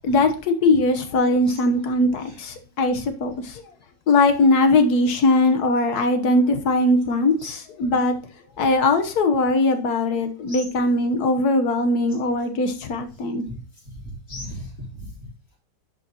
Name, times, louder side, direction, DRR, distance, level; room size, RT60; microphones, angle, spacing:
voice 1, 0.0-3.6 4.1-8.1 8.6-13.4, left 2 dB, 65° left, 8 dB, 1.6 m, -20 dB
voice 2, 2.2-2.5 2.9-3.0 7.4-7.6 10.5-10.7 14.0-15.1, equal, 45° left, -4 dB, 4.1 m, -37 dB
10.5 x 5.5 x 2.9 m, 0.36 s
omnidirectional pair, 1.8 m